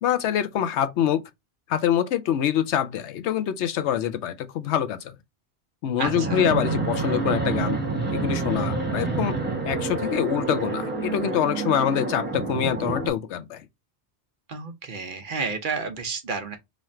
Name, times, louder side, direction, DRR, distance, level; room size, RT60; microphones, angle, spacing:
voice 1, 0.0-1.2 1.7-5.2 5.8-7.8 8.1-9.3 9.6-13.6, left 10 dB, 80° left, 0.9 m, -25 dB
Fixed-wing aircraft airplane, 6.0-13.1, right 3 dB, 10° right, 1.1 m, -28 dB
voice 2, 6.0-6.4 14.5-16.6, right 4 dB, 55° right, 0.8 m, -31 dB
3.1 x 2.5 x 4.2 m
omnidirectional pair, 1.1 m